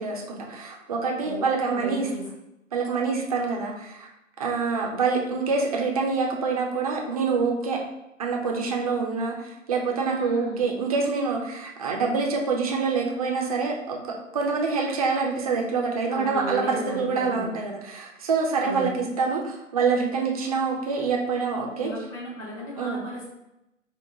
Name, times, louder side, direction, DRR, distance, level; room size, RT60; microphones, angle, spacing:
voice 1, 0.0-2.1 2.7-4.1 4.4-7.8 8.2-21.9 22.8-23.0, right 4 dB, 30° right, 0 dB, 0.6 m, -26 dB
voice 2, 1.2-2.2 10.1-10.7 16.1-17.6 18.6-18.9 21.8-23.3, left 1 dB, 25° left, -4 dB, 1.1 m, -35 dB
4.6 x 2.1 x 3.7 m, 0.88 s
figure-of-eight pair, 125°, 38 cm